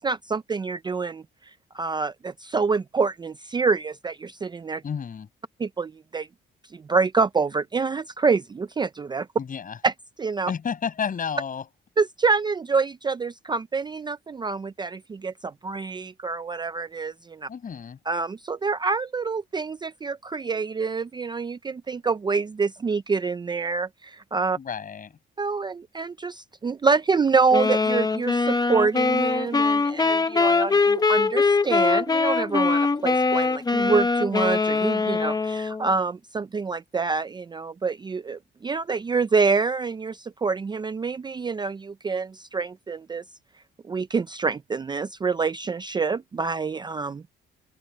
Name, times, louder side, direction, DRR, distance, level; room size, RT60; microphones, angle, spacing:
voice 1, 0.0-4.8 5.6-6.3 6.7-9.3 9.8-9.9 10.2-10.5 12.0-17.5 18.1-24.6 25.4-43.2 43.8-47.4, right 4 dB, 20° right, 0.4 m, -26 dB
voice 2, 4.8-5.3 9.4-9.8 10.5-11.7 17.5-18.0 24.6-25.2, left 7 dB, 40° left, 7.4 m, -31 dB
sound 1, 27.5-35.9, left 4 dB, 20° left, 0.8 m, -22 dB
open air
cardioid pair, 135°, 21 cm